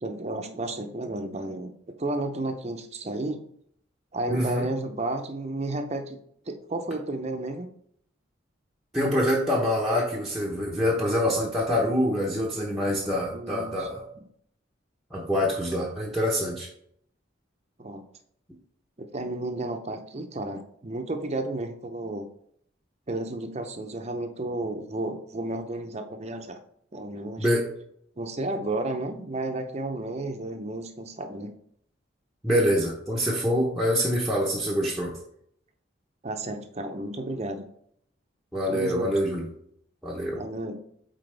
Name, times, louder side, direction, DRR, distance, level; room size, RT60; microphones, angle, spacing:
voice 1, 0.0-1.7 2.0-3.4 4.1-6.2 6.5-7.7 13.3-13.9 17.8-18.0 19.0-22.2 23.1-26.6 26.9-27.5 28.2-31.5 36.2-37.6 38.7-39.1 40.3-40.8, right 2 dB, 35° right, 7 dB, 0.6 m, -32 dB
voice 2, 4.3-4.6 8.9-14.0 15.1-16.7 27.4-27.6 32.4-35.1 38.5-39.4 40.0-40.4, equal, ahead, -4 dB, 0.8 m, -25 dB
7.9 x 4.1 x 3.4 m, 0.68 s
head